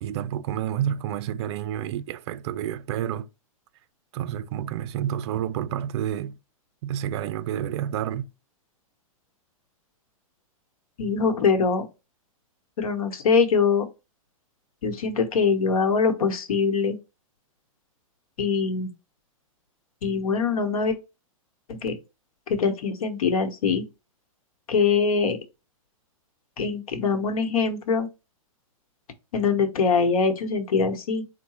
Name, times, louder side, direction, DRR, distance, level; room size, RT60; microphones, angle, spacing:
voice 1, 0.0-3.3 4.1-6.4 6.8-8.3, right 10 dB, 50° right, 0.4 m, -29 dB
voice 2, 11.0-11.9 12.8-13.9 14.8-17.0 18.4-18.9 20.0-21.0 21.7-22.0 22.5-23.8 24.7-25.4 26.6-28.1 29.3-31.2, left 5 dB, 80° left, 1.0 m, -23 dB
4.7 x 2.2 x 4.2 m
hypercardioid pair, 145°, 18 cm